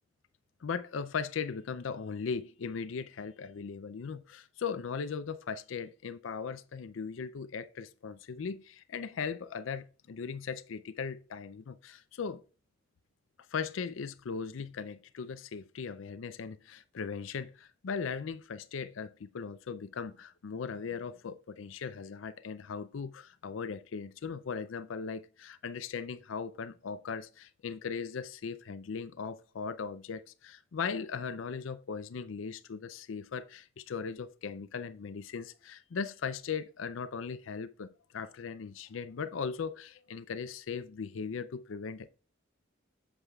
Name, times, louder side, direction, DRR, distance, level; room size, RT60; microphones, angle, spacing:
voice 1, 0.6-12.4 13.5-42.1, left 5 dB, 90° left, 0.5 m, -38 dB
8.1 x 7.3 x 2.3 m
head